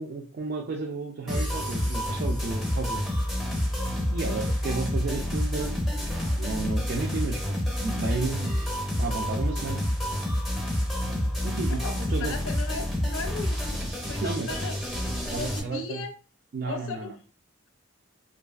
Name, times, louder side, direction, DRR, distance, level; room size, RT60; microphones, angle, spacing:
voice 1, 0.0-3.1 4.1-5.7 6.2-8.5 9.0-9.8 11.4-11.8 12.1-12.4 14.2-14.6 15.3-16.0 16.5-17.1, right 3 dB, 50° right, 1 dB, 0.3 m, -32 dB
sound 1, 1.3-15.6, equal, ahead, 0.6 m, -28 dB
voice 2, 11.7-14.7 15.4-16.1 16.7-17.1, left 4 dB, 70° left, 5 dB, 0.4 m, -37 dB
2.7 x 2.3 x 2.3 m, 0.36 s
head